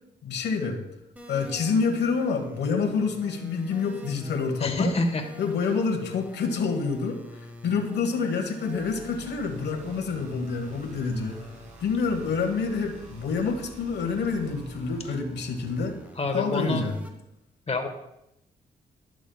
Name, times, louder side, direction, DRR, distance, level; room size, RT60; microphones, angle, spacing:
voice 1, 0.2-0.8 1.3-4.9 5.4-11.4 11.8-16.0 16.3-17.0, left 5 dB, 70° left, 4 dB, 1.2 m, -27 dB
sound 1, 1.2-17.1, equal, 10° right, 1.2 m, -47 dB
voice 2, 4.6-5.2 16.2-16.9 17.7-17.9, left 2 dB, 35° left, 5 dB, 1.3 m, -26 dB
sound 2, 8.6-15.0, right 2 dB, 45° right, 2.3 m, -49 dB
11.5 x 6.1 x 2.3 m, 0.84 s
cardioid pair, 60°, 18 cm